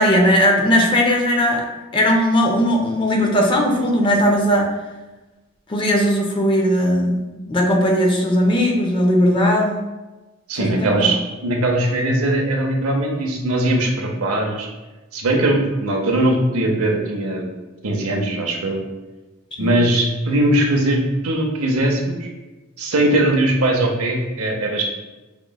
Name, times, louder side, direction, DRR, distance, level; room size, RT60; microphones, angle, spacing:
voice 1, 0.0-1.7 1.9-4.7 5.7-9.8 10.6-11.1 19.6-19.7, equal, 20° left, 1 dB, 0.4 m, -18 dB
voice 2, 10.5-14.7 15.1-17.5 17.8-18.8 19.6-22.3 22.8-24.8, right 1 dB, 90° right, 1 dB, 0.7 m, -20 dB
5.0 x 2.9 x 2.3 m, 1.2 s
head